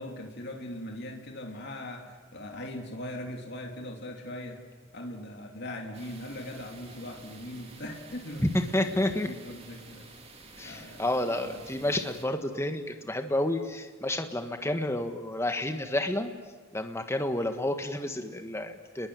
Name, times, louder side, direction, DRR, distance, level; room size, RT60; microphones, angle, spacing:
voice 1, 0.0-4.6 4.9-8.5 8.9-10.1 10.6-11.9, left 1 dB, 50° left, 2 dB, 3.0 m, -40 dB
sound 1, 5.9-12.2, right 3 dB, 30° right, 3.0 m, -50 dB
voice 2, 8.4-9.3 10.6-16.3 16.7-19.1, left 1 dB, 10° left, 6 dB, 1.5 m, -30 dB
29.5 x 21.0 x 9.6 m, 1.4 s
head